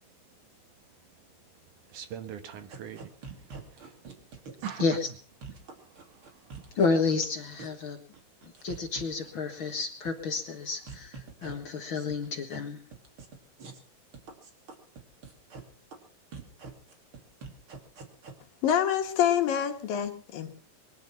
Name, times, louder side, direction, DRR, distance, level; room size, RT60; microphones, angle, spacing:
voice 1, 1.9-4.0 4.6-4.8, right 9 dB, 65° right, 2.8 m, -41 dB
sound 1, 2.7-4.7 5.0-5.1 5.4-7.2 7.6-7.9 8.1-9.3 9.6-10.4 10.7-11.5 12.0-12.6 12.9-13.3 13.6-13.8 14.1-15.6 15.9-16.0 16.3-18.3, right 4 dB, 40° right, 3.1 m, -44 dB
voice 2, 6.8-8.0 8.6-12.8, left 4 dB, 45° left, 1.9 m, -30 dB
voice 3, 18.6-20.5, left 9 dB, 80° left, 3.5 m, -26 dB
23.0 x 10.5 x 5.9 m
omnidirectional pair, 4.0 m